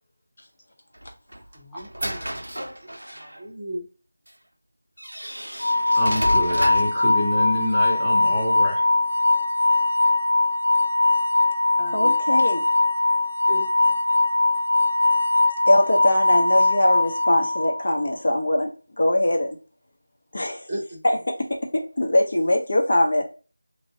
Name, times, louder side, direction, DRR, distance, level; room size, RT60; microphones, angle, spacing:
sound 1, 0.9-3.4 4.3-4.4 5.0-7.0, equal, 85° right, 0.6 m, -32 dB
voice 1, 1.5-3.9 11.8-12.2 13.5-13.9 20.7-21.0, right 1 dB, 30° right, 0.7 m, -36 dB
sound 2, 5.6-17.8, left 2 dB, 75° left, 0.5 m, -21 dB
voice 2, 6.0-8.9, left 1 dB, ahead, 0.9 m, -27 dB
voice 3, 11.9-12.7 15.7-18.7 19.0-19.6 20.3-20.7 21.0-21.5 21.7-23.3, left 1 dB, 50° left, 0.9 m, -22 dB
3.0 x 2.5 x 2.8 m
figure-of-eight pair, 170°, 0 cm